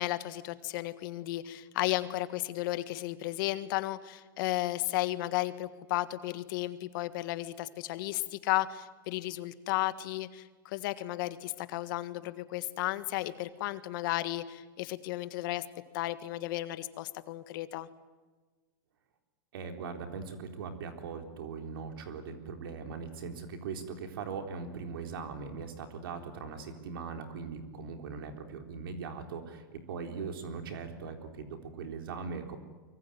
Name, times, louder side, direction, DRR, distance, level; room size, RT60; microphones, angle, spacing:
voice 1, 0.0-15.6 15.9-17.9, left 17 dB, 65° left, 12 dB, 1.6 m, -34 dB
voice 2, 19.5-32.6, right 5 dB, 75° right, 5 dB, 4.0 m, -40 dB
24.0 x 23.5 x 9.5 m, 1.3 s
hypercardioid pair, 115°, 12 cm